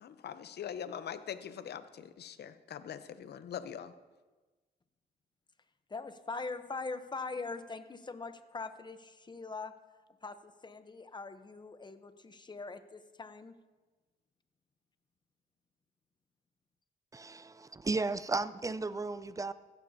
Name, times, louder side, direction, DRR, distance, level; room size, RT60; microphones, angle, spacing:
voice 1, 0.0-3.9, left 8 dB, 65° left, 12 dB, 0.7 m, -42 dB
voice 2, 5.9-9.7 10.2-13.5, left 3 dB, 25° left, 11 dB, 0.8 m, -42 dB
voice 3, 17.1-19.5, right 3 dB, 20° right, 15 dB, 0.5 m, -34 dB
15.5 x 11.5 x 2.8 m, 1.3 s
cardioid pair, 85°, 18 cm